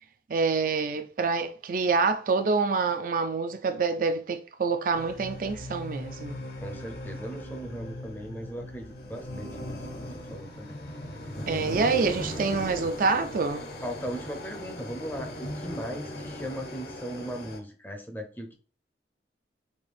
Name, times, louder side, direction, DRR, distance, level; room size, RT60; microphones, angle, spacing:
voice 1, 0.3-6.4 11.5-13.6, right 4 dB, 50° right, 0.4 m, -26 dB
sound 1, 4.9-17.6, left 1 dB, 60° left, 0.8 m, -38 dB
voice 2, 6.6-10.7 13.8-18.6, equal, 10° left, 0.5 m, -38 dB
4.2 x 2.8 x 3.4 m
head